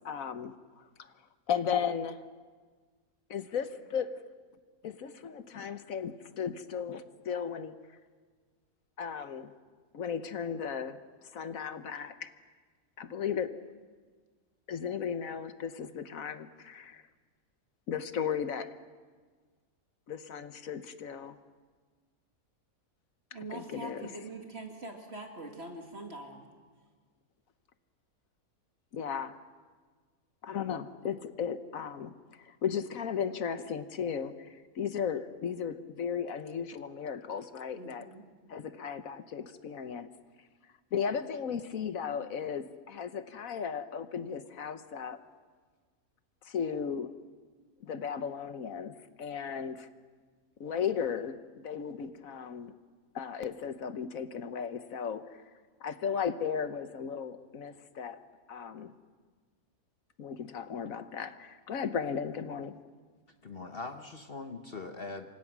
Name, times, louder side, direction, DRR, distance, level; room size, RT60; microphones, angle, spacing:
voice 1, 0.0-1.1 1.5-2.2 3.3-4.1 4.8-7.7 9.0-9.5 9.9-11.0 11.3-12.3 13.0-13.5 14.7-17.0 17.9-18.7 20.1-21.4 23.5-24.1 28.9-29.3 30.4-38.1 38.5-40.1 40.9-45.2 46.4-47.1 47.8-49.9 50.6-52.7 53.1-55.4 55.8-58.2 58.5-58.9 60.2-62.8, left 7 dB, 65° left, 11 dB, 1.4 m, -35 dB
voice 2, 23.3-26.5 37.7-38.3, right 2 dB, 45° right, 2 dB, 2.5 m, -43 dB
voice 3, 63.4-65.3, left 3 dB, 45° left, 6 dB, 1.2 m, -41 dB
28.0 x 24.5 x 6.1 m, 1.5 s
omnidirectional pair, 1.6 m